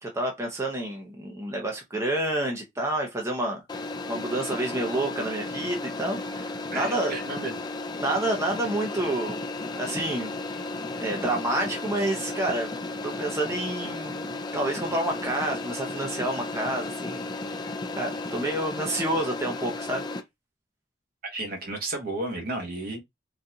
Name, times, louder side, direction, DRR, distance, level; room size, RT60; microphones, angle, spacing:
voice 1, 0.0-3.6 4.1-7.2 8.0-9.4 9.7-12.7 13.0-17.2 17.6-20.0, right 1 dB, 15° right, 0.7 m, -29 dB
sound 1, 3.7-20.2, left 2 dB, 25° left, 0.4 m, -34 dB
voice 2, 6.7-7.6 21.2-23.0, right 2 dB, 55° right, 1.2 m, -32 dB
3.9 x 2.4 x 2.7 m
head